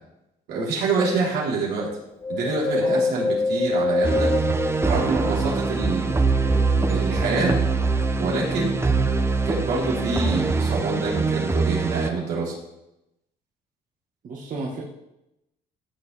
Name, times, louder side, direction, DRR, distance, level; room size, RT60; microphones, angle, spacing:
voice 1, 0.5-1.9 2.3-4.3 4.8-6.1 6.9-7.6 8.2-8.7 9.5-12.5, right 3 dB, 80° right, -5 dB, 4.0 m, -26 dB
Wind, 2.2-5.8 6.3-7.6 8.1-8.2, left 3 dB, 20° left, 0.5 m, -26 dB
voice 2, 2.8-3.1 14.2-14.8, right 3 dB, 50° right, -3 dB, 1.8 m, -32 dB
sound 1, 4.0-12.1, right 4 dB, 15° right, 0.8 m, -23 dB
15.5 x 6.9 x 3.5 m, 0.89 s
cardioid pair, 110°, 17 cm